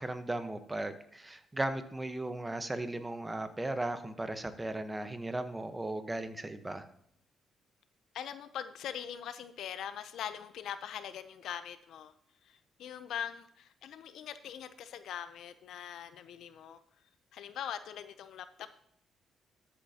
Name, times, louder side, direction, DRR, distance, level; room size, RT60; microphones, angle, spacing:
voice 1, 0.0-6.9, right 2 dB, 15° right, 9 dB, 1.1 m, -36 dB
voice 2, 8.1-12.1 12.4-16.8 17.3-18.8, left 9 dB, 75° left, 12 dB, 0.6 m, -42 dB
13.0 x 8.5 x 2.9 m, 0.70 s
cardioid pair, 90°, 0 cm